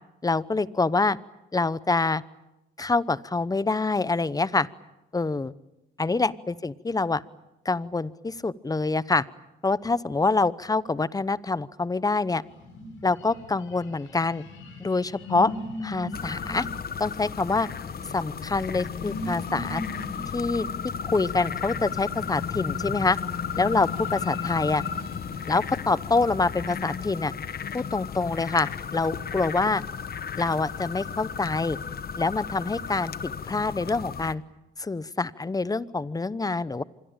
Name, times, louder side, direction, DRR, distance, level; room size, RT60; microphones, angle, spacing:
voice 1, 0.2-1.2 1.5-2.2 2.8-4.7 5.1-5.5 6.0-7.2 7.6-9.2 9.6-12.4 13.0-14.4 14.8-15.5 15.8-16.7 17.0-17.7 18.1-19.8 20.3-20.7 21.0-23.2 23.6-24.8 25.5-27.3 27.7-29.8 30.4-31.8 32.2-34.4 34.8-36.8, left 3 dB, 20° left, 18 dB, 0.9 m, -26 dB
sound 1, 12.4-26.2, left 2 dB, 80° left, 6.3 m, -40 dB
sound 2, 16.1-34.4, left 7 dB, 50° left, 1.2 m, -34 dB
26.5 x 22.0 x 9.0 m, 0.95 s
cardioid pair, 90°, 20 cm